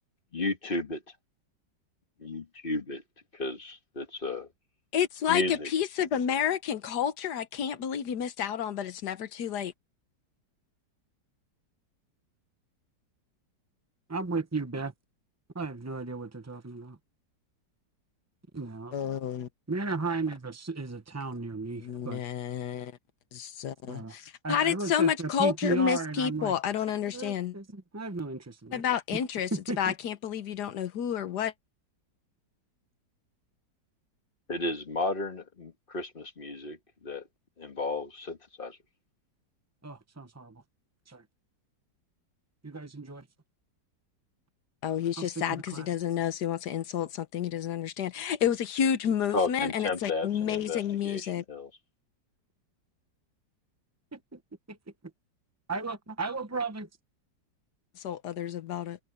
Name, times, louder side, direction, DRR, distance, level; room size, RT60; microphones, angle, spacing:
voice 1, 0.3-1.0 2.2-3.0 3.4-4.5 5.3-5.7 34.5-37.3 37.6-38.8 49.3-51.7, left 2 dB, 30° left, 1.7 m, -33 dB
voice 2, 4.9-9.7 18.9-19.5 21.8-22.9 23.3-27.5 28.7-29.5 29.8-31.5 44.8-51.4 58.0-59.0, left 8 dB, 65° left, 1.5 m, -30 dB
voice 3, 14.1-14.9 15.5-17.0 18.5-18.9 19.7-22.2 23.9-24.2 24.4-26.5 27.1-28.8 29.1-29.2 29.5-29.9 39.8-40.6 41.1-41.2 42.6-43.3 45.2-45.9 54.1-54.4 54.7-54.8 55.7-56.9, right 3 dB, 25° right, 0.3 m, -35 dB
omnidirectional pair, 1.9 m